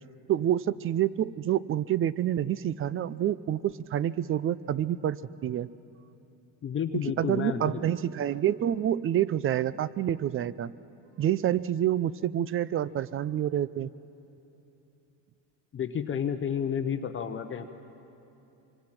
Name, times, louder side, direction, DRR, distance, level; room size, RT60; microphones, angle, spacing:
voice 1, 0.3-5.7 7.2-10.7 11.2-13.9, right 11 dB, 35° right, 19 dB, 0.5 m, -28 dB
voice 2, 6.6-7.9 15.7-17.7, left 8 dB, 30° left, 7 dB, 0.9 m, -31 dB
25.0 x 24.5 x 6.0 m, 2.9 s
cardioid pair, 120°, 39 cm